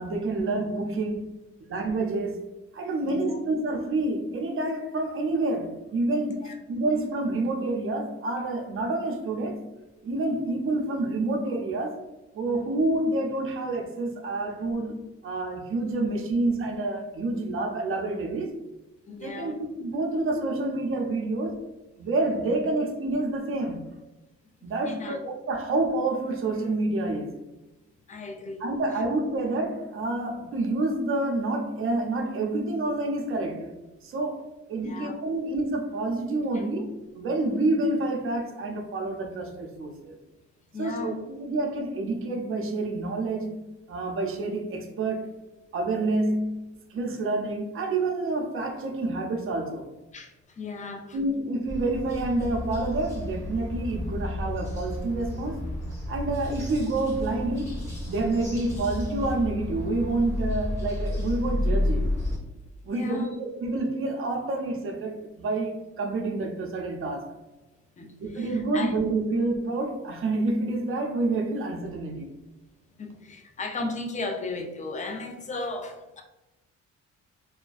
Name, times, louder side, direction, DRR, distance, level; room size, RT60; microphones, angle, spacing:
voice 1, 0.0-1.3 1.7-2.5 2.7-9.7 10.0-12.0 12.3-18.5 19.2-19.5 19.8-21.6 22.0-23.9 24.6-27.3 28.6-33.7 34.0-40.2 40.8-45.3 45.7-49.9 51.1-55.6 56.1-57.8 58.0-62.1 62.8-67.3 68.2-72.3, right 2 dB, 45° right, 2 dB, 0.5 m, -28 dB
voice 2, 3.0-3.4 6.4-6.6 19.1-19.6 24.8-25.2 28.1-28.7 34.7-35.1 40.7-41.2 50.1-51.2 62.9-63.4 68.0-68.9 73.0-76.2, left 3 dB, 25° left, 3 dB, 0.4 m, -36 dB
sound 1, 51.7-62.4, left 1 dB, 10° left, 1.1 m, -31 dB
2.3 x 2.1 x 2.4 m, 1.0 s
cardioid pair, 90°, 30 cm